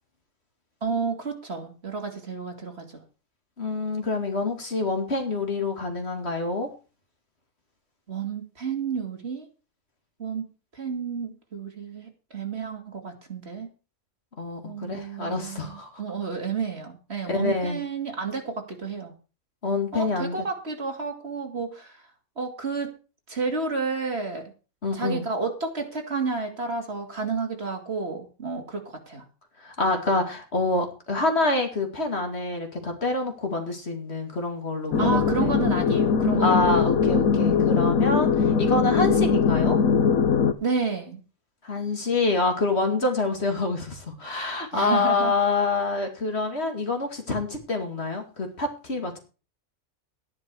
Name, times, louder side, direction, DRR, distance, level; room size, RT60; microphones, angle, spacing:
voice 1, 0.8-3.0 8.1-9.5 10.2-10.4 10.7-13.7 14.6-19.1 19.9-22.0 22.4-22.9 23.3-24.5 24.9-29.2 35.0-36.8 40.6-41.2 44.7-45.3, right 4 dB, 50° right, 3 dB, 2.7 m, -31 dB
voice 2, 3.6-6.7 14.4-15.9 17.3-17.8 19.6-20.4 24.8-25.3 29.6-35.6 36.4-39.8 41.6-49.2, left 3 dB, 50° left, 4 dB, 2.6 m, -26 dB
sound 1, 34.9-40.5, left 6 dB, 85° left, 1.5 m, -21 dB
12.5 x 10.5 x 4.7 m, 0.34 s
omnidirectional pair, 1.5 m